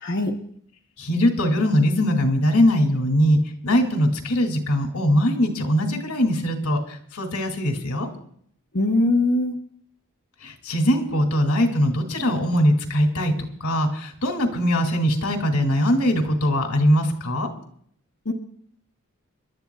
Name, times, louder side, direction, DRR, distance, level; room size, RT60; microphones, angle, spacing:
voice 1, 0.0-0.3 8.7-9.6 18.3-18.4, left 2 dB, 50° left, 1 dB, 0.9 m, -21 dB
voice 2, 1.0-3.4 3.6-8.1 10.4-13.3 13.6-17.5, equal, 85° left, 3 dB, 2.4 m, -21 dB
29.5 x 12.0 x 2.3 m, 0.65 s
head